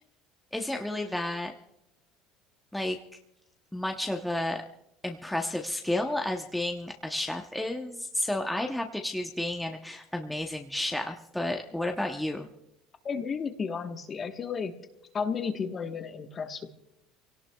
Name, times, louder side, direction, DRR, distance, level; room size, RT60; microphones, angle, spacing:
voice 1, 0.5-1.5 2.7-3.0 3.7-4.6 5.0-12.5, left 1 dB, 5° left, 2 dB, 0.9 m, -31 dB
voice 2, 13.0-14.7 15.1-16.7, left 6 dB, 30° left, 7 dB, 1.2 m, -33 dB
28.0 x 17.5 x 2.3 m, 0.82 s
cardioid pair, 130°, 0 cm